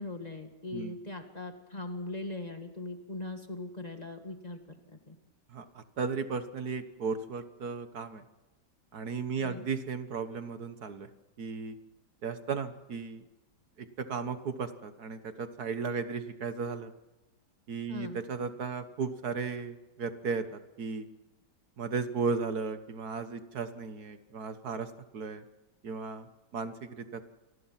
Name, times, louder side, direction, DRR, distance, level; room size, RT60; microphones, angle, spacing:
voice 1, 0.0-4.6 5.1-5.2 9.4-9.7 17.9-18.2, left 2 dB, 25° left, 5 dB, 2.1 m, -40 dB
voice 2, 5.5-8.2 8.9-11.1 11.4-11.8 12.2-13.2 13.8-16.9 17.7-21.1 21.8-25.4 25.8-26.3 26.5-27.2, right 5 dB, 65° right, 10 dB, 1.8 m, -35 dB
27.5 x 19.5 x 5.9 m, 1.1 s
omnidirectional pair, 1.9 m